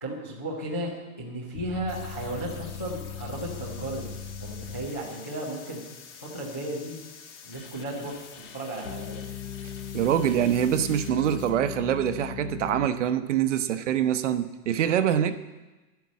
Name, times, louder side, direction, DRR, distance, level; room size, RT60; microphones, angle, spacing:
voice 1, 0.0-4.1 4.4-5.9 6.2-7.0 7.4-9.2, right 1 dB, 10° left, -7 dB, 0.4 m, -34 dB
sound 1, 1.5-4.9 8.8-12.9, left 8 dB, 90° left, 1.2 m, -38 dB
sound 2, 1.9-11.5, left 7 dB, 50° left, 1.8 m, -48 dB
voice 2, 9.9-15.4, right 10 dB, 50° right, 11 dB, 0.9 m, -25 dB
11.5 x 9.2 x 8.4 m, 1.1 s
hypercardioid pair, 170°, 47 cm